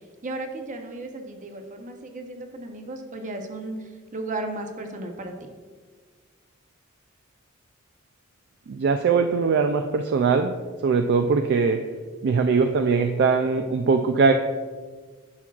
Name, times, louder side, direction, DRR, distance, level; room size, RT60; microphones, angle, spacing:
voice 1, 0.2-5.5, right 2 dB, 35° right, 4 dB, 0.8 m, -35 dB
voice 2, 8.7-10.5 10.8-11.8 12.2-14.3, right 5 dB, 55° right, 6 dB, 0.3 m, -21 dB
9.7 x 6.0 x 2.4 m, 1.5 s
head